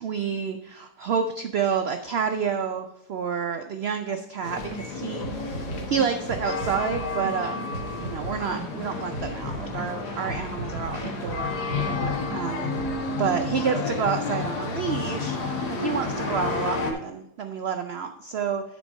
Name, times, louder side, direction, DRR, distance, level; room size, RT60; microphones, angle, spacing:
voice 1, 0.0-7.7 8.0-12.7 13.1-18.8, right 6 dB, 75° right, 6 dB, 0.5 m, -29 dB
sound 1, 4.4-16.9, left 4 dB, 75° left, 1.8 m, -31 dB
sound 2, 4.6-4.8 5.2-7.4 7.7-9.9 10.3-12.4 12.7-13.0, right 2 dB, 55° right, 1.6 m, -37 dB
10.0 x 4.4 x 5.3 m, 0.81 s
omnidirectional pair, 1.7 m